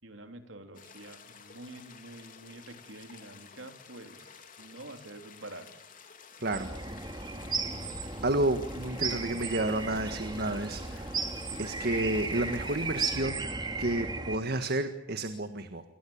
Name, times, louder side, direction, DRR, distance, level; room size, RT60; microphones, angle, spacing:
voice 1, 0.0-5.8, right 2 dB, 80° right, 7 dB, 3.4 m, -47 dB
sound 1, 0.7-13.0, left 6 dB, 45° left, 3.6 m, -52 dB
sound 2, 6.5-14.4, right 3 dB, 25° right, 3.0 m, -35 dB
voice 2, 8.2-11.1 11.6-13.4 13.8-15.8, right 2 dB, 55° right, 9 dB, 1.7 m, -31 dB
28.5 x 23.5 x 8.7 m, 0.85 s
head